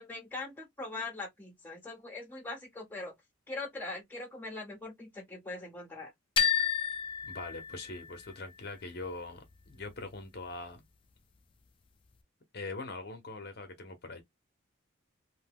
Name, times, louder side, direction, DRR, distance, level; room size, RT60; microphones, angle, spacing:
voice 1, 0.0-3.1 3.5-6.1, left 3 dB, 10° left, 0.9 m, -41 dB
sound 1, 6.4-8.3, left 8 dB, 25° left, 0.3 m, -31 dB
voice 2, 7.2-10.8 12.5-14.2, left 3 dB, 50° left, 0.8 m, -42 dB
2.7 x 2.2 x 3.5 m
head